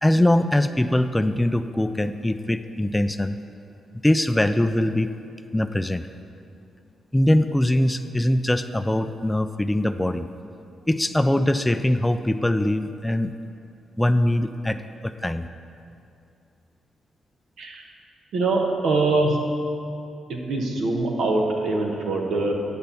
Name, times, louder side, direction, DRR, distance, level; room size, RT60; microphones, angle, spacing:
voice 1, 0.0-3.4 4.0-5.1 5.5-6.1 7.1-10.3 10.9-13.3 14.0-15.5, left 1 dB, 10° left, 10 dB, 0.3 m, -22 dB
voice 2, 18.3-19.4 20.3-22.5, right 2 dB, 80° right, 1 dB, 1.2 m, -23 dB
9.6 x 4.4 x 6.9 m, 2.6 s
cardioid pair, 65°, 0 cm